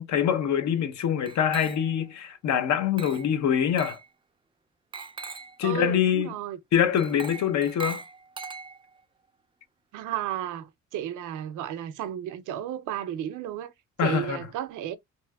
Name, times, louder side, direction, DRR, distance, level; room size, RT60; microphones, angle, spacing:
voice 1, 0.0-4.0 5.6-6.3 6.7-8.0 14.0-14.4, left 9 dB, 70° left, 0.7 m, -24 dB
Glass, 1.3-2.1 3.0-3.4 3.8-4.1 4.9-5.6 7.0-9.0, right 4 dB, 20° right, 0.3 m, -40 dB
voice 2, 5.6-6.6 7.3-7.6 9.9-13.7 14.0-15.0, right 11 dB, 85° right, 0.6 m, -33 dB
2.9 x 2.6 x 2.2 m
cardioid pair, 90°, 30 cm